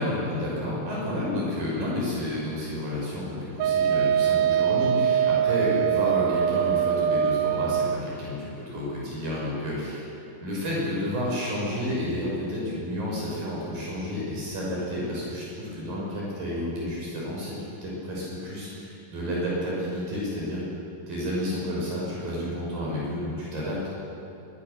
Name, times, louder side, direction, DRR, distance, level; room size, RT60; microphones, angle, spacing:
voice 1, 0.0-10.1 10.4-17.6 17.8-20.6 21.1-23.8, left 1 dB, 65° right, -5 dB, 7.8 m, -30 dB
Wind instrument woodwind instrument, 3.6-8.0, right 9 dB, 85° right, 2.7 m, -23 dB
22.5 x 22.0 x 6.9 m, 2.7 s
omnidirectional pair, 4.3 m